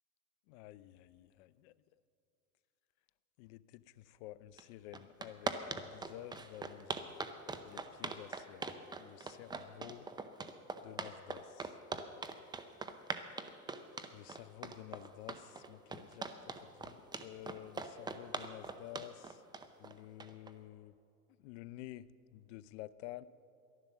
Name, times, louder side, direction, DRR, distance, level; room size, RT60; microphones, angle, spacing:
voice 1, 0.5-1.7 3.4-7.1 7.6-8.7 9.0-10.1 10.8-11.7 14.1-16.3 16.6-19.4 19.8-20.9 21.4-23.2, left 15 dB, 55° left, 16 dB, 0.6 m, -51 dB
sound 1, 4.6-4.7 4.9-20.5, right 4 dB, 10° right, 0.6 m, -41 dB
12.0 x 11.0 x 7.0 m, 2.6 s
hypercardioid pair, 110°, 42 cm